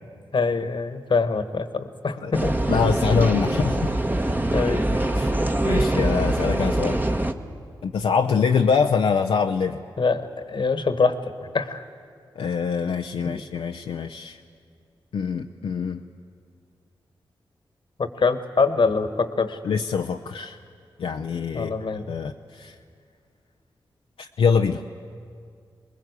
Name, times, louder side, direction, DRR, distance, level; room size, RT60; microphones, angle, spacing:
voice 1, 0.3-2.6 4.5-5.0 8.3-8.4 10.0-10.2 10.5-11.2 11.5-11.8 18.0-19.6 21.5-22.1, left 4 dB, 55° left, 10 dB, 1.4 m, -24 dB
sound 1, 2.3-7.3, right 1 dB, 20° right, 1.3 m, -23 dB
voice 2, 2.7-3.9 5.1-5.3 5.6-7.0 7.8-9.8 12.4-14.4 15.1-16.0 19.6-20.6 21.0-21.7 22.1-22.7 24.2-24.8, left 6 dB, 80° left, 3 dB, 0.7 m, -24 dB
23.5 x 20.5 x 8.2 m, 2.2 s
cardioid pair, 45°, 9 cm